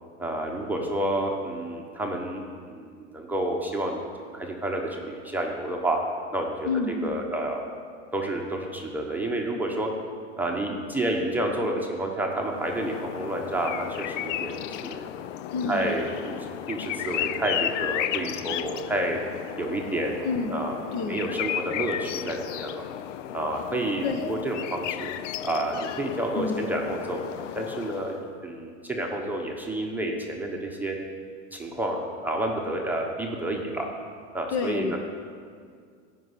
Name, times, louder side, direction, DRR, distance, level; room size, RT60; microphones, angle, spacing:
voice 1, 0.2-2.4 2.7-6.0 6.3-6.7 7.0-7.7 8.1-9.9 10.4-15.1 15.7-19.2 19.6-22.8 23.3-25.1 25.4-28.1 28.4-31.0 31.5-33.9 34.3-35.0, right 1 dB, 5° right, -1 dB, 0.9 m, -30 dB
voice 2, 6.6-7.1 15.5-15.9 20.2-20.6 20.9-21.2 24.0-24.4 26.4-26.6 34.5-35.0, left 4 dB, 45° left, 7 dB, 1.0 m, -29 dB
sound 1, 12.4-28.3, left 11 dB, 70° left, 0.6 m, -34 dB
14.5 x 5.4 x 8.1 m, 2.1 s
supercardioid pair, 135°, 38 cm